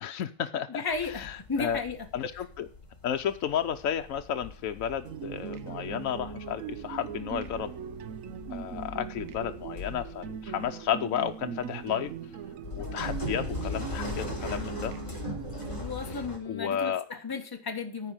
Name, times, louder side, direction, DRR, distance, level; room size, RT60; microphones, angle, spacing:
voice 1, 0.0-0.8 1.1-1.8 2.1-2.7 3.0-7.7 8.5-12.1 12.7-14.9 16.5-17.0, left 9 dB, 75° left, 1.1 m, -32 dB
voice 2, 0.7-2.1 15.8-18.1, left 4 dB, 15° left, 1.3 m, -34 dB
sound 1, 0.9-16.4, left 2 dB, 35° left, 3.7 m, -40 dB
sound 2, 5.0-15.8, right 8 dB, 75° right, 1.1 m, -40 dB
14.0 x 4.9 x 8.8 m
omnidirectional pair, 1.4 m